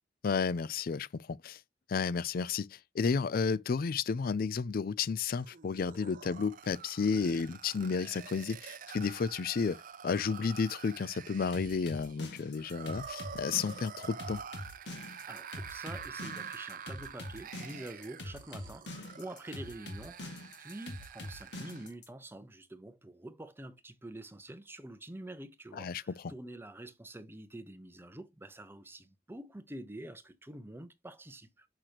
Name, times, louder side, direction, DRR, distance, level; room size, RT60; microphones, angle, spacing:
voice 1, 0.2-1.6 1.9-14.4 25.7-26.1, left 5 dB, 55° left, 0.4 m, -32 dB
sound 1, 5.3-21.9, right 7 dB, 50° right, 0.6 m, -47 dB
sound 2, 11.5-22.1, left 1 dB, 70° left, 2.0 m, -44 dB
voice 2, 15.2-31.7, right 1 dB, 15° right, 0.8 m, -47 dB
6.5 x 5.9 x 2.9 m
head